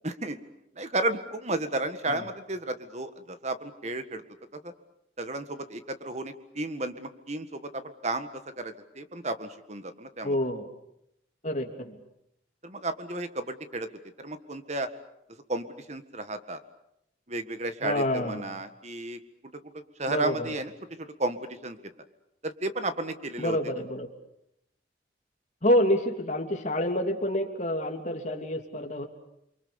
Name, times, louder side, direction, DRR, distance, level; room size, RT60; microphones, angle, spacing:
voice 1, 0.0-0.4 0.8-4.2 4.6-4.7 5.2-8.3 8.6-10.3 12.6-13.9 14.2-14.9 15.5-16.6 17.3-19.2 20.0-20.7 21.0-21.8 22.4-23.6, right 2 dB, 40° right, 10 dB, 1.8 m, -33 dB
voice 2, 10.2-10.7 11.4-12.0 17.8-18.4 20.1-20.5 23.4-24.1 25.6-29.1, left 1 dB, 40° left, 3 dB, 3.0 m, -28 dB
29.0 x 24.0 x 7.1 m, 0.79 s
head